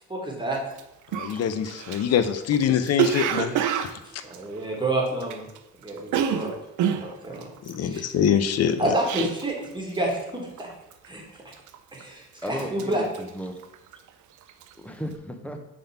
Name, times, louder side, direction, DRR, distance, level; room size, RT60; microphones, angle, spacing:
voice 1, 0.1-0.6 4.2-5.5 5.8-6.5 7.2-7.4 7.8-8.0 8.8-10.7 11.1-11.2 11.9-13.0, right 1 dB, 15° right, -2 dB, 1.7 m, -28 dB
Cough, 0.7-0.8 1.1-5.6 5.8-9.7 9.9-10.3 10.6-11.1 11.5-12.1 12.4-14.1 14.4-14.7, right 9 dB, 75° right, 0.6 m, -28 dB
voice 2, 1.1-3.9 7.6-8.9, left 8 dB, 55° left, 11 dB, 0.6 m, -24 dB
voice 3, 12.4-13.6 14.8-15.6, equal, 5° left, 5 dB, 0.8 m, -35 dB
5.2 x 3.7 x 5.7 m, 0.92 s
cardioid pair, 90°, 30 cm